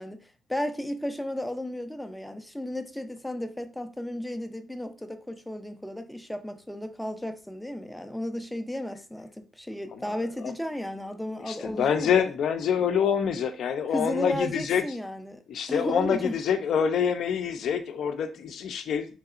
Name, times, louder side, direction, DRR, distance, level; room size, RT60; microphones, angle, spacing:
voice 1, 0.0-12.3 13.9-15.4 15.7-16.4, left 1 dB, 5° left, 0.4 m, -34 dB
voice 2, 11.5-14.8 15.5-19.2, left 7 dB, 70° left, 0.4 m, -26 dB
3.2 x 2.7 x 2.4 m
cardioid pair, 90°, 0 cm